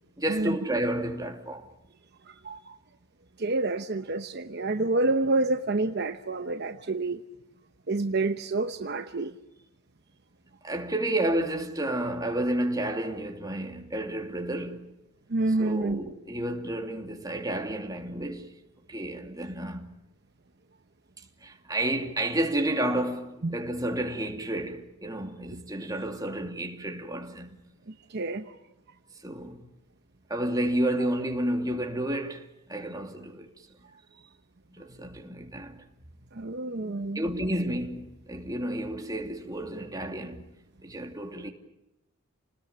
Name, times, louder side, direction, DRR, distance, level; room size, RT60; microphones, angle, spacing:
voice 1, 0.2-1.7 10.6-14.9 15.6-18.5 18.9-19.9 21.4-27.7 29.2-29.7 30.3-33.5 34.7-35.8 37.1-40.4 40.8-41.5, right 1 dB, 20° right, 2.7 m, -31 dB
voice 2, 2.3-2.8 3.4-7.2 7.9-9.3 15.3-16.0 23.4-23.5 28.1-28.5 32.8-32.9 36.3-37.2, right 2 dB, 50° right, 0.9 m, -28 dB
29.5 x 20.0 x 8.8 m
head